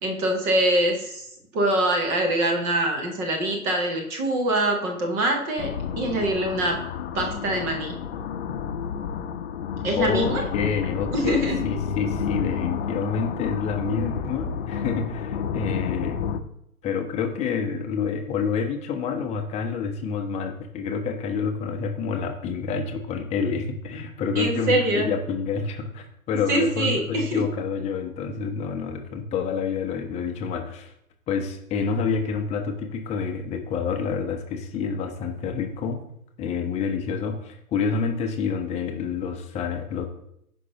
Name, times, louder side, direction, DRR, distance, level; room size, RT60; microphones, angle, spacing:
voice 1, 0.0-5.7 6.0-6.8 7.1-8.0 9.8-10.4 11.1-11.6 24.4-25.1 26.5-27.4, right 1 dB, 5° right, 2 dB, 0.4 m, -24 dB
sound 1, 5.6-16.4, left 7 dB, 45° left, 0.8 m, -30 dB
voice 2, 10.0-16.2 16.8-30.9 31.3-36.0 36.4-40.1, left 5 dB, 15° left, 4 dB, 0.8 m, -28 dB
16.0 x 5.5 x 2.9 m, 0.75 s
figure-of-eight pair, 115°, 45 cm